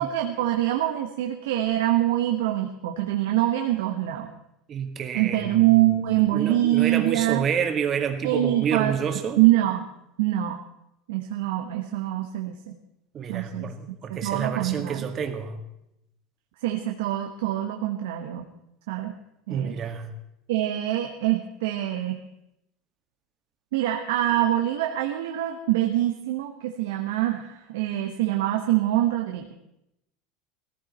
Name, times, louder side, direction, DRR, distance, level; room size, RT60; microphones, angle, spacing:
voice 1, 0.0-4.3 5.1-7.4 8.2-8.9 9.4-9.9 10.2-10.6 11.1-12.7 13.3-13.7 14.1-15.0 16.6-18.5 18.9-19.1 19.5-19.7 20.5-22.2 23.7-29.5, right 14 dB, 90° right, 3 dB, 1.2 m, -24 dB
voice 2, 4.7-9.4 13.1-15.6 19.5-20.1, right 7 dB, 35° right, 5 dB, 1.9 m, -29 dB
17.5 x 15.0 x 4.3 m, 0.84 s
supercardioid pair, 130°, 0 cm